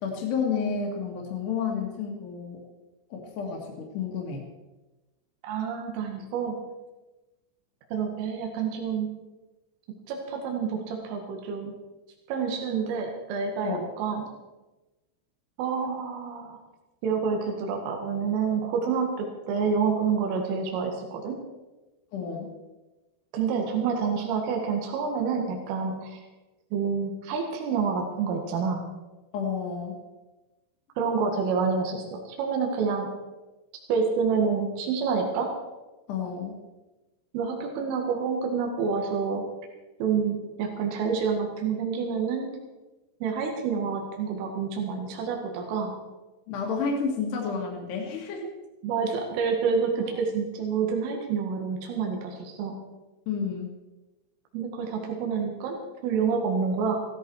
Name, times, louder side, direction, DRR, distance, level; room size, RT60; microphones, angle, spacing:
voice 1, 0.0-2.6 3.1-4.4 13.6-13.8 22.1-22.5 29.3-30.0 36.1-36.6 46.5-48.4 53.3-53.7, left 6 dB, 60° left, -1 dB, 3.8 m, -30 dB
voice 2, 5.5-6.6 7.9-9.1 10.1-11.7 12.3-14.2 15.6-16.6 17.0-21.4 23.3-26.2 26.7-28.8 31.0-33.1 33.9-35.5 37.3-39.4 40.0-42.5 43.2-45.9 48.8-52.7 54.5-57.0, right 5 dB, 80° right, 1 dB, 4.5 m, -28 dB
16.5 x 14.5 x 4.8 m, 1.1 s
omnidirectional pair, 5.7 m